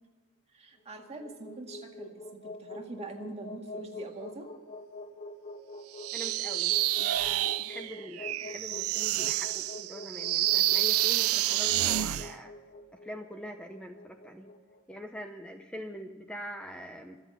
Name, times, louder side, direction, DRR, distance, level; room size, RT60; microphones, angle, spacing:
voice 1, 0.5-4.5, right 2 dB, 30° right, 2 dB, 2.0 m, -44 dB
sound 1, 0.8-15.1, left 2 dB, 35° left, 1.3 m, -45 dB
sound 2, 6.0-12.3, right 15 dB, 80° right, 0.4 m, -28 dB
voice 2, 6.1-12.5 13.0-14.5 14.9-17.2, equal, 5° left, 5 dB, 0.7 m, -43 dB
25.0 x 8.4 x 5.5 m, 1.4 s
head